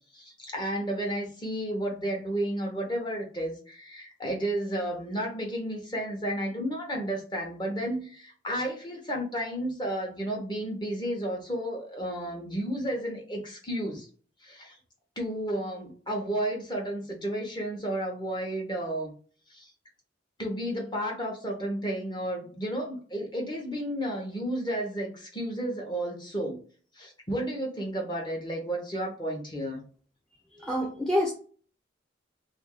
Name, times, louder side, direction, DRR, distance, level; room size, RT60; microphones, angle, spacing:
voice 1, 0.1-14.1 14.4-14.8 15.2-19.1 19.5-19.7 20.4-26.6 26.9-29.8, right 1 dB, 25° left, 0 dB, 0.9 m, -32 dB
voice 2, 30.6-31.3, left 1 dB, 5° left, -3 dB, 0.5 m, -27 dB
2.7 x 2.5 x 3.7 m, 0.42 s
head